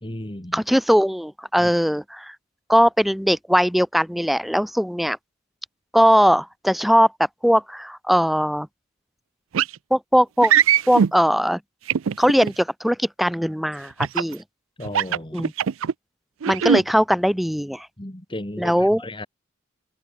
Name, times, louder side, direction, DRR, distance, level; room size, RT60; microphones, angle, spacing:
voice 1, 0.0-0.6 1.6-1.7 14.8-15.4 18.0-19.3, left 1 dB, 25° left, 2.1 m, -34 dB
voice 2, 0.5-2.3 2.7-5.2 5.9-7.1 7.4-8.7 9.9-10.5 10.9-11.6 12.2-14.4 15.3-15.5 16.5-17.9 18.6-19.1, equal, ahead, 0.7 m, -20 dB
sound 1, 9.5-9.7 10.4-11.1 11.9-12.5 14.0-14.3 14.8-15.9 16.4-16.8, right 8 dB, 85° right, 0.5 m, -20 dB
head